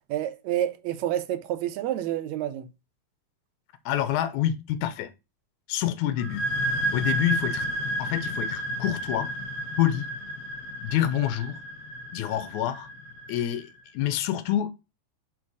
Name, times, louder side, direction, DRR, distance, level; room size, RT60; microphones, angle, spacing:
voice 1, 0.1-2.7, right 12 dB, 80° right, 1.8 m, -29 dB
voice 2, 3.9-5.1 5.7-6.4 6.9-7.7 8.0-9.3 9.8-10.1 10.8-11.6 12.1-12.9 13.3-13.7 13.9-14.7, left 12 dB, 90° left, 2.1 m, -27 dB
sound 1, 6.2-13.6, right 1 dB, 70° left, 1.5 m, -32 dB
4.5 x 4.5 x 4.7 m
omnidirectional pair, 3.4 m